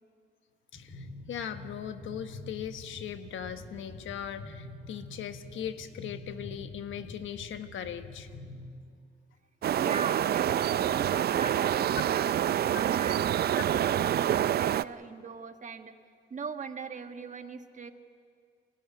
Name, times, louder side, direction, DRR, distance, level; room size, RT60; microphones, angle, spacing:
voice 1, 0.7-8.3 12.7-12.8 13.6-13.7, left 9 dB, 75° left, 9 dB, 1.3 m, -39 dB
sound 1, 0.7-8.7, left 2 dB, 40° left, 4.5 m, -46 dB
sound 2, 9.6-14.8, right 11 dB, 55° right, 0.5 m, -27 dB
voice 2, 9.8-16.0 16.3-17.9, right 5 dB, 40° right, 7 dB, 1.5 m, -40 dB
22.5 x 15.5 x 9.8 m, 2.3 s
cardioid pair, 90°, 20 cm